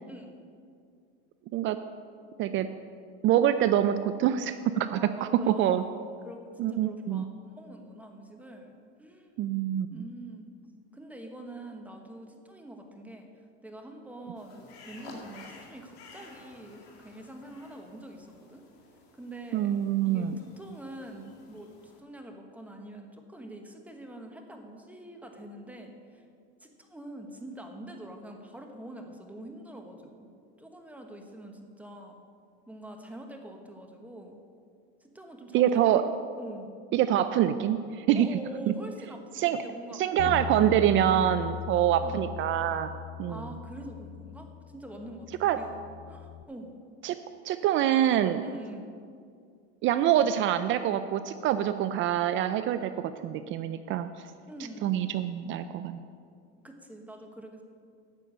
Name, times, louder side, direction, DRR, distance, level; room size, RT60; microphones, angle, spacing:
voice 1, 3.2-5.8 6.6-7.3 9.4-10.0 19.5-20.4 35.5-36.0 36.9-38.4 39.4-39.6 39.9-42.9 43.2-43.4 45.4-45.6 47.0-47.2 47.4-48.4 49.8-52.9 53.2-54.1 54.8-56.0, right 11 dB, 40° right, 11 dB, 0.4 m, -25 dB
voice 2, 4.9-5.9 6.2-8.7 9.0-9.4 9.9-10.5 10.9-13.3 13.6-18.6 19.1-26.2 26.6-30.3 30.6-32.2 32.7-34.4 35.0-36.0 36.4-36.7 38.1-40.4 42.0-42.2 43.3-45.7 46.1-46.7 48.4-48.9 54.5-55.0 56.6-57.6, right 1 dB, 5° right, 3 dB, 1.2 m, -45 dB
sound 1, 14.4-22.0, left 3 dB, 85° left, 2.4 m, -52 dB
Bass guitar, 40.2-46.4, left 12 dB, 55° left, 0.6 m, -39 dB
9.0 x 6.9 x 8.6 m, 2.3 s
supercardioid pair, 120°, 31 cm